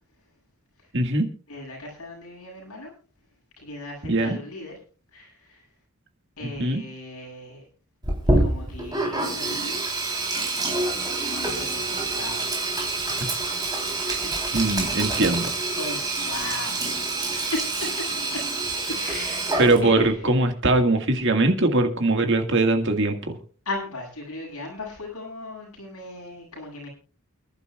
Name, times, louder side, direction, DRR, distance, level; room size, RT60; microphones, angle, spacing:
voice 1, 0.9-1.3 4.1-4.4 6.6-6.8 14.5-15.5 19.6-23.4, right 2 dB, 55° right, 5 dB, 1.9 m, -21 dB
voice 2, 1.5-2.9 3.6-4.7 5.1-5.7 6.4-7.7 8.2-9.8 11.4-12.5 14.1-16.9 17.3-18.4 18.9-19.5 19.8-20.3 23.7-26.9, left 2 dB, 75° left, -1 dB, 7.6 m, -37 dB
Sink (filling or washing), 8.0-20.1, right 2 dB, 15° right, 3.7 m, -27 dB
29.0 x 11.5 x 2.4 m, 0.37 s
head